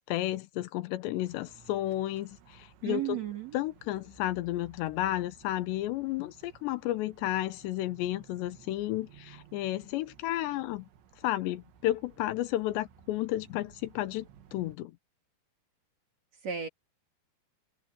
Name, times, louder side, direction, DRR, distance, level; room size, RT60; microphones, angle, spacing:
voice 1, 0.1-3.2 3.5-10.9 11.2-14.9, left 15 dB, 85° left, 3.1 m, -32 dB
sound 1, 1.2-14.8, right 8 dB, 85° right, 4.2 m, -57 dB
voice 2, 2.8-3.6 16.4-16.7, right 9 dB, 45° right, 3.2 m, -34 dB
omnidirectional pair, 5.0 m